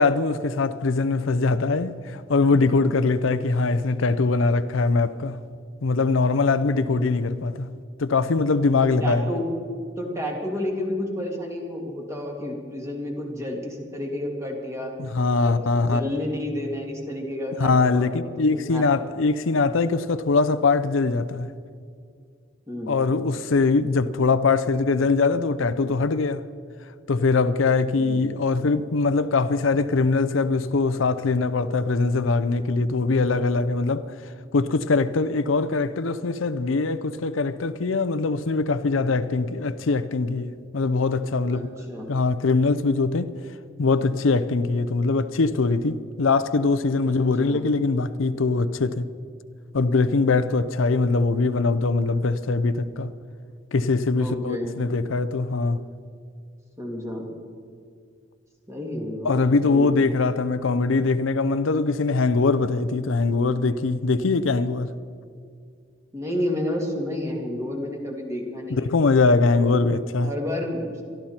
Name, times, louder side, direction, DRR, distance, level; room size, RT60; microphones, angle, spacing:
voice 1, 0.0-5.4 5.8-7.7 8.0-9.3 15.0-16.1 17.6-21.5 22.9-26.5 27.1-34.1 34.5-41.7 42.1-43.4 43.8-49.1 49.7-53.1 53.7-55.9 59.2-64.9 68.7-70.3, left 3 dB, 85° left, 0.6 m, -22 dB
voice 2, 8.8-9.5 10.0-14.9 15.4-18.9 22.7-22.9 28.0-28.2 41.5-42.1 47.1-47.6 54.2-55.1 56.8-57.3 58.7-59.4 59.6-60.0 66.1-68.9 69.5-69.8 70.2-71.0, left 1 dB, 15° right, 2.5 m, -31 dB
22.5 x 13.0 x 4.4 m
head